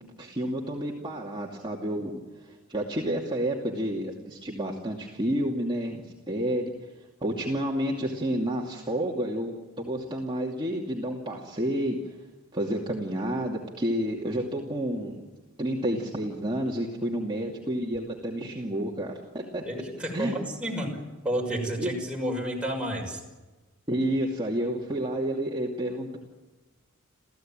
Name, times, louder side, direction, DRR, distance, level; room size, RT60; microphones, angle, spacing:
voice 1, 0.2-2.1 2.4-6.7 7.2-12.1 12.5-15.2 15.6-19.6 20.1-20.3 21.8-21.9 23.9-26.2, right 1 dB, 25° right, -2 dB, 2.6 m, -30 dB
voice 2, 19.7-21.0 21.2-23.2, equal, 5° right, -1 dB, 6.1 m, -31 dB
29.5 x 15.5 x 9.0 m, 1.2 s
head